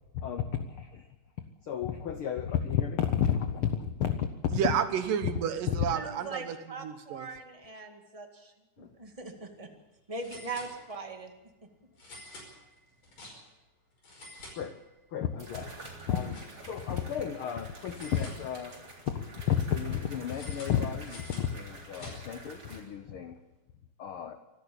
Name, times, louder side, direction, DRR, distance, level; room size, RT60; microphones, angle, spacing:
voice 1, 0.2-1.0 1.7-4.3 14.6-14.7 15.1-15.7 16.1-16.4 16.7-18.7 19.0-23.3 24.0-24.4, left 9 dB, 75° left, 8 dB, 1.2 m, -32 dB
voice 2, 4.5-6.6 6.8-7.3, right 8 dB, 90° right, 9 dB, 3.1 m, -31 dB
voice 3, 5.9-9.7 10.1-11.3, right 3 dB, 15° right, 4 dB, 1.5 m, -41 dB
sound 1, 9.0-9.2 9.5-9.6 10.2-11.2 12.0-13.7 14.0-15.2 15.5-16.9 17.8-18.9 20.3-22.5, left 1 dB, 50° left, 6.2 m, -49 dB
sound 2, 14.4-14.5 15.4-22.8, right 2 dB, 30° right, 4.0 m, -48 dB
24.5 x 13.0 x 8.6 m, 1.0 s
omnidirectional pair, 3.7 m